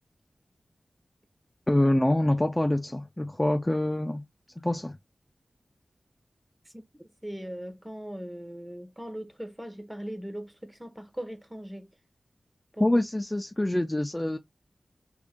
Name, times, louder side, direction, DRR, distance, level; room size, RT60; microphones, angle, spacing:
voice 1, 1.7-4.2 4.6-5.0 12.8-14.4, left 1 dB, 15° left, 0.5 m, -25 dB
voice 2, 7.2-11.9 12.7-13.0, equal, 10° right, 0.9 m, -39 dB
2.8 x 2.6 x 3.6 m
wide cardioid pair, 65°, 0 cm